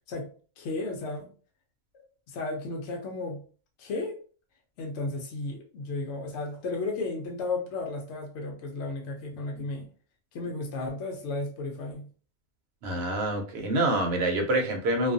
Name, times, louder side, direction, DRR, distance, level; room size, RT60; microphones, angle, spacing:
voice 1, 0.6-1.3 2.3-3.4 3.8-4.2 4.8-9.9 10.3-12.1, left 3 dB, 70° left, 1 dB, 0.8 m, -34 dB
voice 2, 12.8-15.1, right 1 dB, 65° right, 3 dB, 0.9 m, -26 dB
2.3 x 2.3 x 2.5 m, 0.40 s
omnidirectional pair, 1.3 m